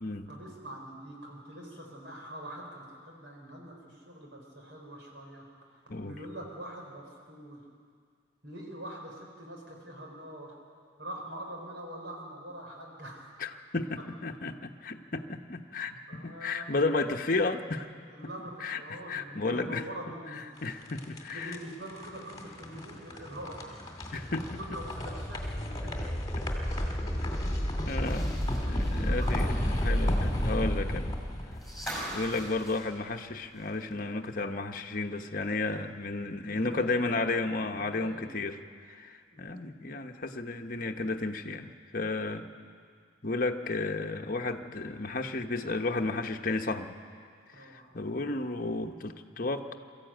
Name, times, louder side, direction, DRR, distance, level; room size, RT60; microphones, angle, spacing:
voice 1, 0.3-7.6 8.4-10.6 11.0-13.3 16.1-16.8 18.1-20.4 21.3-23.8 24.6-26.1 26.6-27.0 28.6-29.6 36.5-38.3 39.3-39.7 42.5-42.6 47.5-47.9, right 1 dB, 65° right, 0 dB, 4.6 m, -44 dB
voice 2, 13.4-17.9 18.6-19.8 20.6-21.6 24.1-24.8 27.9-29.5 29.8-31.1 32.1-42.4 43.2-47.0 47.5-49.7, left 3 dB, 45° left, 4 dB, 1.0 m, -33 dB
sound 1, 20.6-32.7, equal, 20° left, 2.3 m, -32 dB
sound 2, 27.9-33.9 34.2-34.3 35.7-35.8, equal, ahead, 5.5 m, -43 dB
23.5 x 14.0 x 9.1 m, 2.1 s
head